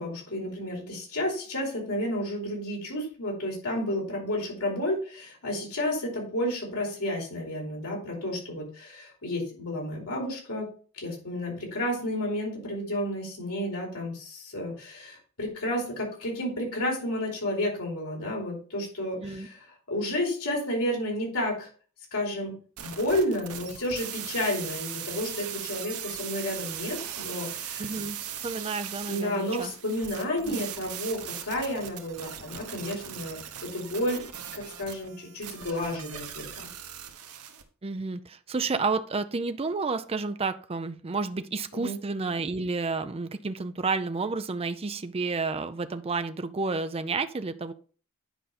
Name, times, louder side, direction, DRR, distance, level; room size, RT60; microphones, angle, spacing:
voice 1, 0.0-10.7 10.9-21.7 22.1-27.9 29.1-34.3 34.5-36.7 41.7-42.0, left 1 dB, 80° left, -2 dB, 4.6 m, -31 dB
sound 1, 22.8-37.6, right 9 dB, 80° right, 1.2 m, -39 dB
voice 2, 27.8-28.2 28.4-29.7 30.5-30.6 37.8-47.7, right 4 dB, 25° right, 10 dB, 0.5 m, -31 dB
10.0 x 5.2 x 4.2 m, 0.40 s
head